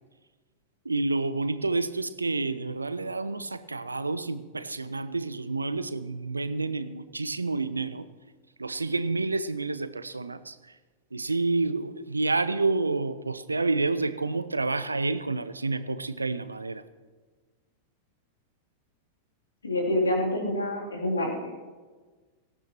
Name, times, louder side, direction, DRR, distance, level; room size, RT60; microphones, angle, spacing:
voice 1, 0.8-8.0 8.6-10.6 11.1-16.8, right 3 dB, 80° right, 14 dB, 0.6 m, -29 dB
voice 2, 19.6-21.5, left 1 dB, 75° left, -2 dB, 3.1 m, -27 dB
18.5 x 16.0 x 3.0 m, 1.4 s
figure-of-eight pair, 90°, 0 cm